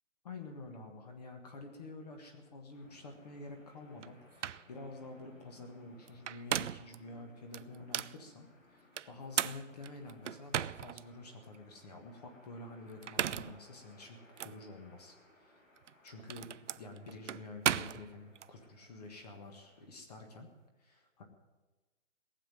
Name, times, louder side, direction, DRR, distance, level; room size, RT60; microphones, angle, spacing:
voice 1, 0.2-15.6 16.0-16.5 16.8-20.5 20.8-21.2, left 2 dB, 30° left, 4 dB, 1.6 m, -49 dB
sound 1, 2.7-19.9, left 2 dB, 75° left, 4.4 m, -64 dB
sound 2, 4.0-4.1 4.4-4.7 6.1-7.0 7.5-8.2 9.0-11.0 11.5-11.6 12.9-13.6 14.4-14.5 15.8-18.5, right 9 dB, 65° right, 0.5 m, -36 dB
18.5 x 7.5 x 9.2 m, 1.2 s
hypercardioid pair, 165°, 39 cm